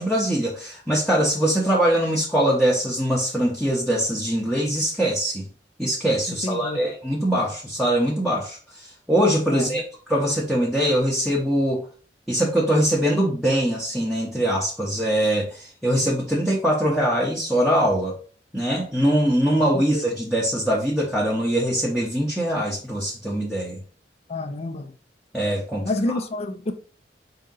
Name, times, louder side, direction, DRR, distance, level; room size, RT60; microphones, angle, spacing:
voice 1, 0.0-5.5 5.8-9.8 10.1-11.8 12.3-18.2 18.5-23.8 25.3-25.9, equal, ahead, 0.7 m, -22 dB
voice 2, 6.3-6.8 9.5-9.8 19.7-20.1 24.3-24.9 25.8-26.7, left 2 dB, 35° left, 0.4 m, -29 dB
4.9 x 2.8 x 3.7 m
head